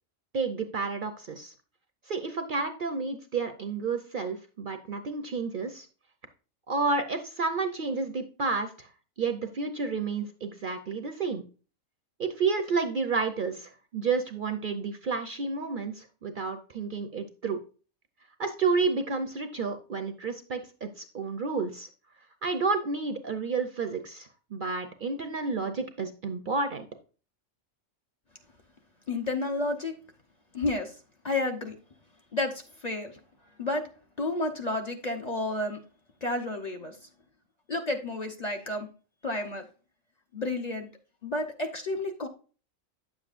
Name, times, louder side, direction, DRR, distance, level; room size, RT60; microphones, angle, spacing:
voice 1, 0.3-1.5 2.1-5.9 6.7-8.9 9.2-11.4 12.2-17.6 18.4-21.9 22.4-26.8, right 4 dB, 50° right, 6 dB, 0.7 m, -30 dB
voice 2, 29.1-29.9 30.5-30.9 31.2-31.7 32.3-33.2 33.6-33.8 34.2-35.8 36.2-37.0 37.7-38.9 39.2-39.6 40.3-40.9 41.2-42.3, left 2 dB, 35° left, 3 dB, 0.8 m, -31 dB
9.4 x 7.3 x 2.5 m, 0.37 s
omnidirectional pair, 1.3 m